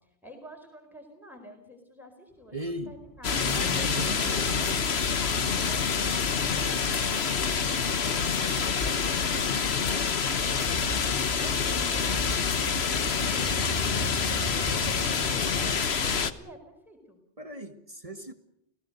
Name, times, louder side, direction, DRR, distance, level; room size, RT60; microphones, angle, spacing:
voice 1, 0.0-3.7 4.1-4.7 5.2-14.1 14.5-17.2, equal, ahead, 2 dB, 4.5 m, -49 dB
voice 2, 2.5-2.9 3.4-4.5 17.4-18.3, right 2 dB, 30° right, 7 dB, 1.8 m, -37 dB
sound 1, 2.6-15.8, left 1 dB, 30° left, 1.7 m, -40 dB
sound 2, 3.2-16.3, left 6 dB, 70° left, 1.4 m, -27 dB
29.5 x 17.0 x 6.6 m, 0.76 s
omnidirectional pair, 1.1 m